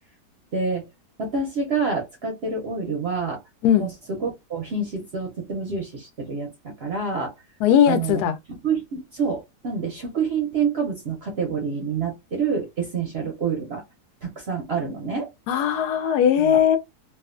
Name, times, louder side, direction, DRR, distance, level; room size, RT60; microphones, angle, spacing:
voice 1, 0.5-0.8 1.2-3.4 3.8-7.3 7.9-8.2 8.5-13.8 14.2-15.3 16.4-16.6, right 5 dB, 60° right, 0.7 m, -27 dB
voice 2, 7.6-8.3 15.5-16.8, left 9 dB, 80° left, 1.1 m, -19 dB
2.7 x 2.4 x 2.4 m
omnidirectional pair, 1.7 m